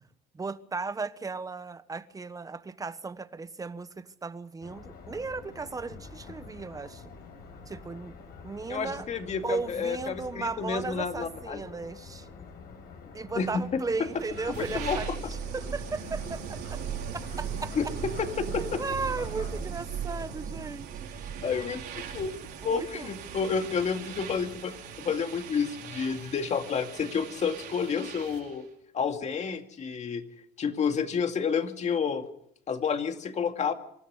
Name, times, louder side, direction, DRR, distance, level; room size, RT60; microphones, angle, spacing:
voice 1, 0.3-7.0 7.7-8.1 8.4-9.1 9.4-12.3 13.1-15.1 15.5-16.8 17.4-17.7 18.5-21.3 22.6-23.1, right 4 dB, 20° right, 1.2 m, -36 dB
sound 1, 4.6-19.6, left 5 dB, 65° left, 5.6 m, -47 dB
voice 2, 8.7-11.6 13.3-14.1 14.5-15.0 17.8-17.9 18.2-18.8 21.4-22.3 22.6-28.7 28.9-30.2 30.6-32.2 32.7-33.7, left 6 dB, 45° left, 2.3 m, -30 dB
sound 2, 13.9-28.5, right 7 dB, 80° right, 5.0 m, -38 dB
25.5 x 13.0 x 8.2 m
cardioid pair, 110°, 17 cm